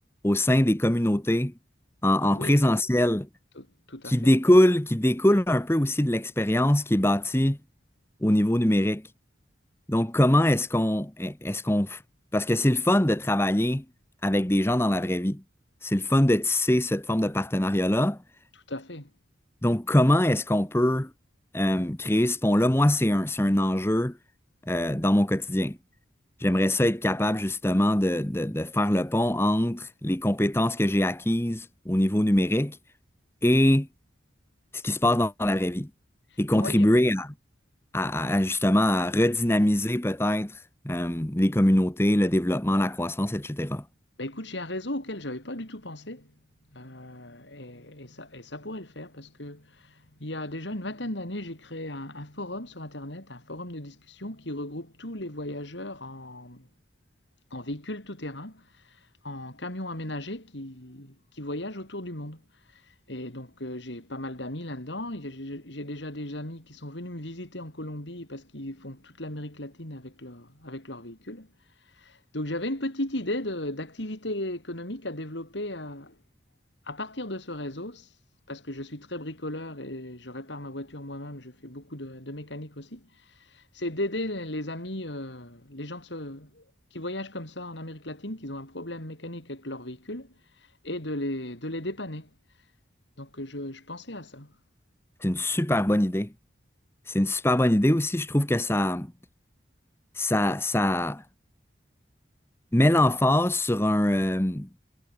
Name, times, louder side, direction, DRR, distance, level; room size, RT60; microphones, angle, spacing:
voice 1, 0.2-1.5 2.0-3.3 4.0-7.6 8.2-9.0 9.9-12.0 12.3-13.8 14.2-15.4 15.8-18.2 19.6-21.1 21.5-24.2 24.7-25.8 26.4-32.8 33.4-33.9 34.7-35.9 36.4-37.3 37.9-43.8 95.2-96.3 97.1-99.1 100.2-101.2 102.7-104.7, left 1 dB, 15° left, 1.1 m, -23 dB
voice 2, 2.3-2.6 3.6-4.3 18.7-19.1 36.5-36.9 44.2-46.3 46.7-56.7 57.5-59.0 59.2-62.4 62.7-62.8 63.1-71.5 72.0-76.2 76.9-78.1 78.5-86.6 86.9-90.3 90.8-92.3 93.2-94.5, left 1 dB, 70° left, 5.5 m, -36 dB
head